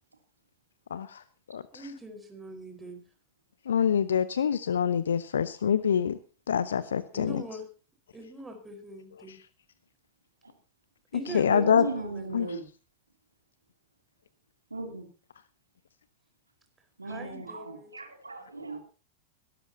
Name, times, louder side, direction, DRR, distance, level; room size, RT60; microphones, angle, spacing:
voice 1, 0.9-1.2 1.5-1.6 3.7-6.2 6.5-7.4 11.3-11.9 12.3-12.5, left 8 dB, 65° left, 16 dB, 0.6 m, -25 dB
voice 2, 1.7-3.0 7.1-7.7 8.1-9.4 11.1-12.6 17.0-17.9, right 2 dB, 10° right, 4 dB, 4.7 m, -43 dB
voice 3, 11.3-12.7 14.7-15.1 17.0-18.8, right 3 dB, 80° right, 4 dB, 3.0 m, -36 dB
22.0 x 13.0 x 2.9 m, 0.35 s
figure-of-eight pair, 90°, 0 cm